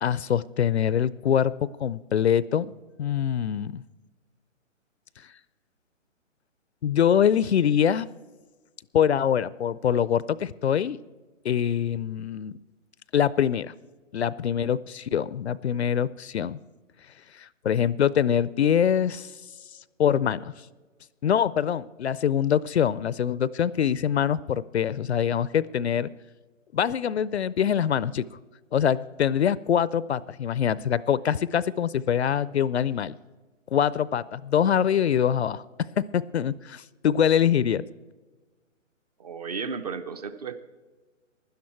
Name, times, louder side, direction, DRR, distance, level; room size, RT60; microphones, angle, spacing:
voice 1, 0.0-2.7 3.0-3.8 6.8-8.1 8.9-11.0 11.4-12.6 13.1-13.7 14.1-16.6 17.4-19.3 20.0-20.5 21.2-26.1 26.7-28.2 28.7-33.2 33.7-37.8, left 9 dB, 60° left, 20 dB, 0.5 m, -24 dB
voice 2, 39.2-40.6, right 5 dB, 30° right, 13 dB, 0.6 m, -34 dB
16.0 x 11.5 x 4.4 m, 1.3 s
hypercardioid pair, 150°, 39 cm